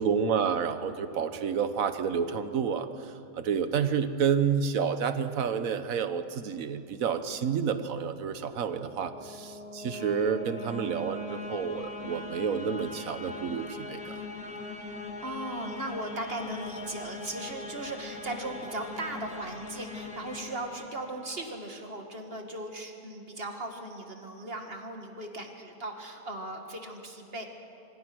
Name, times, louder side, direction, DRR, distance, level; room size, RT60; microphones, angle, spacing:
voice 1, 0.0-14.2, right 7 dB, 65° right, 10 dB, 1.5 m, -29 dB
sound 1, 8.5-21.6, left 2 dB, 75° left, 2.5 m, -41 dB
voice 2, 15.2-27.5, right 1 dB, 40° right, 3 dB, 2.4 m, -38 dB
27.0 x 24.0 x 6.2 m, 2.8 s
omnidirectional pair, 1.6 m